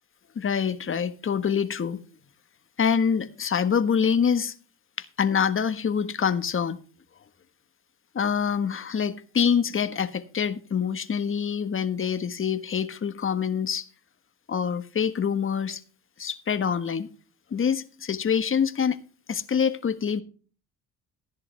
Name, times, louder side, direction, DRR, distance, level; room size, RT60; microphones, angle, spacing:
voice 1, 0.3-2.0 2.8-4.5 5.0-6.8 8.1-13.9 14.5-15.8 16.2-17.1 17.5-19.0 19.3-20.2, left 7 dB, 35° left, 1.5 m, -25 dB
14.0 x 10.5 x 3.4 m
supercardioid pair, 80°, 36 cm